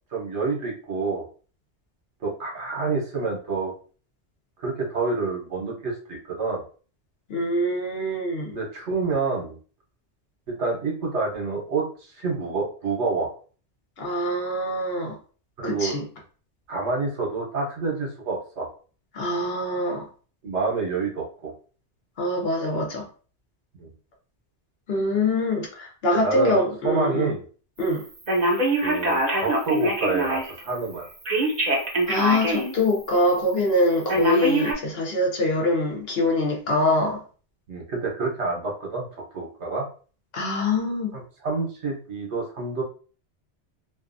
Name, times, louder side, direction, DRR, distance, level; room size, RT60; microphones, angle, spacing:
voice 1, 0.1-1.2 2.2-3.7 4.6-6.6 8.5-9.6 10.5-13.3 15.6-16.0 16.7-18.7 20.4-21.5 23.8-23.9 26.1-27.4 28.8-31.1 34.1-34.2 37.7-39.1 39.3-39.8 41.1-42.8, right 4 dB, 70° right, 1.1 m, -28 dB
voice 2, 7.3-8.5 14.0-15.1 15.6-16.0 19.1-20.1 22.2-23.0 24.9-27.3 27.8-28.0 32.1-37.2 40.3-41.2, left 1 dB, 60° left, 0.9 m, -24 dB
Telephone, 28.3-30.6 31.3-32.7 33.2-33.3 34.1-34.7, right 1 dB, 45° right, 0.7 m, -23 dB
2.6 x 2.4 x 2.5 m
omnidirectional pair, 1.2 m